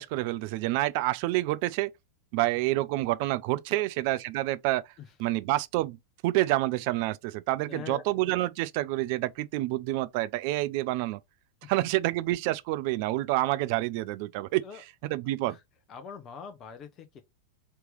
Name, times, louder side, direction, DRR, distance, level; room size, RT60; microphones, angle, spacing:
voice 1, 0.0-1.9 2.3-4.8 5.2-6.0 6.2-11.2 11.7-14.6 15.0-15.6, right 17 dB, 45° right, 0.3 m, -28 dB
voice 2, 7.6-8.0 11.6-11.9 14.6-14.8 15.5-15.6 15.9-17.2, left 7 dB, 30° left, 0.8 m, -43 dB
3.4 x 2.9 x 3.3 m
figure-of-eight pair, 90°, 0 cm